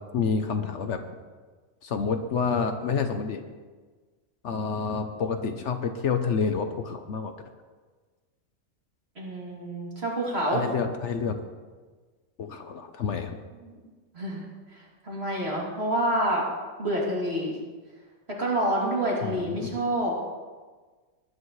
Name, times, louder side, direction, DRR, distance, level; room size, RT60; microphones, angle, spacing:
voice 1, 0.1-1.0 1.8-3.4 4.4-7.3 10.5-11.4 12.4-13.4 19.2-19.6, left 5 dB, 65° left, 7 dB, 1.0 m, -28 dB
voice 2, 9.1-10.6 13.6-13.7 14.1-14.4 14.7-16.4 16.8-17.5 18.4-20.1, right 1 dB, 50° right, -4 dB, 3.3 m, -28 dB
19.0 x 9.9 x 3.2 m, 1.4 s
omnidirectional pair, 1.4 m